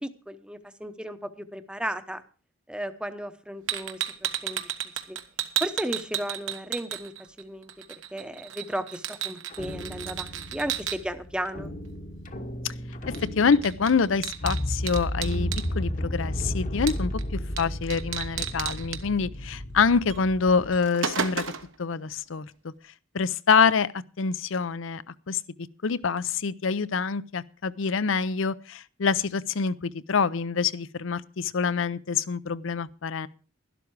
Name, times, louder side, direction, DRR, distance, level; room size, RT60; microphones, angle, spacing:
voice 1, 0.0-2.2 2.7-4.0 4.4-4.6 5.1-5.2 5.6-7.1 7.4-7.7 8.1-11.7, equal, 5° right, 0.8 m, -34 dB
sound 1, 3.7-7.4 7.7-11.0 13.1-13.3 13.5-15.7 16.9-17.2 17.6-17.7 17.9-19.0 20.1-20.2 20.6-21.7, right 9 dB, 70° right, 1.2 m, -32 dB
sound 2, 9.5-20.8, left 1 dB, 40° left, 1.1 m, -34 dB
voice 2, 13.1-21.4 21.8-22.7 23.1-25.4 25.8-33.3, left 5 dB, 70° left, 0.6 m, -26 dB
12.0 x 12.0 x 4.7 m
head